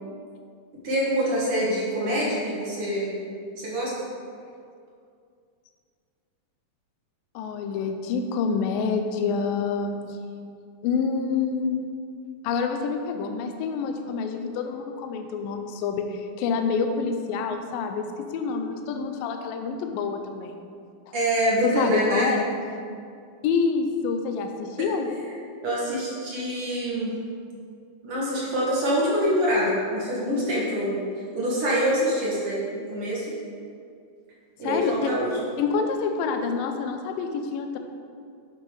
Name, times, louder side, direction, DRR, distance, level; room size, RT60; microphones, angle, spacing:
voice 1, 0.8-3.2 3.5-3.9 21.1-22.4 24.8-24.9 25.6-27.1 28.0-31.0 31.4-33.3 34.6-35.4, equal, 45° right, -6 dB, 2.1 m, -25 dB
voice 2, 7.4-10.3 10.8-11.9 12.4-20.6 21.1-21.2 21.6-22.6 23.4-25.1 34.6-35.1 35.6-37.8, left 5 dB, 80° left, 5 dB, 2.2 m, -27 dB
10.5 x 5.8 x 4.7 m, 2.3 s
omnidirectional pair, 4.4 m